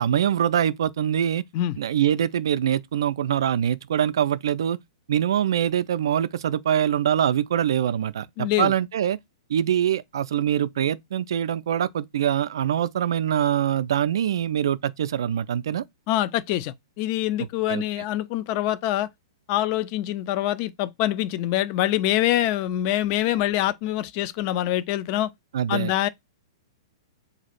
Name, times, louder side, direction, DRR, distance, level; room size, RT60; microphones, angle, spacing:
voice 1, 0.0-1.5 1.8-4.8 5.1-9.2 9.5-15.8 17.7-17.8 25.5-25.9, right 10 dB, 60° right, 0.3 m, -24 dB
voice 2, 8.4-8.7 16.1-19.1 19.5-25.3 25.7-26.1, left 14 dB, 40° left, 0.3 m, -25 dB
3.9 x 2.4 x 4.1 m
figure-of-eight pair, 105°, 3 cm